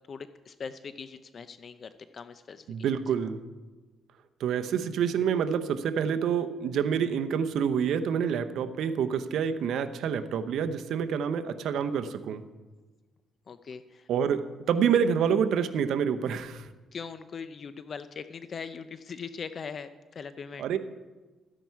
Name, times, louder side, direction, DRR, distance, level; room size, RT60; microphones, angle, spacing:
voice 1, 0.1-2.7 13.5-14.1 16.9-20.6, left 6 dB, 50° left, 12 dB, 0.6 m, -41 dB
voice 2, 2.7-3.4 4.4-12.4 14.1-14.4 14.7-16.7 20.6-20.8, right 7 dB, 75° right, 9 dB, 0.8 m, -27 dB
14.0 x 10.0 x 4.7 m, 1.2 s
cardioid pair, 90°, 0 cm